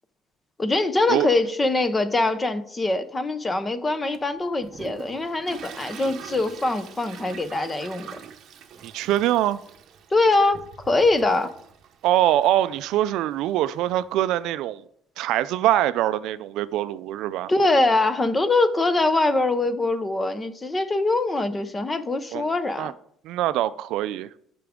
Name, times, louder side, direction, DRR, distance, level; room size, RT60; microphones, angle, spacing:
voice 1, 0.6-8.1 10.1-10.6 10.9-11.5 17.5-22.9, left 2 dB, 15° left, 0.6 m, -23 dB
Toilet flush, 4.1-14.4, right 7 dB, 45° right, 0.9 m, -44 dB
voice 2, 8.8-9.6 12.0-14.8 15.2-17.5 22.3-22.5 22.8-22.9 23.2-24.3, right 13 dB, 65° right, 0.3 m, -23 dB
12.0 x 6.0 x 3.6 m
cardioid pair, 170°, 0 cm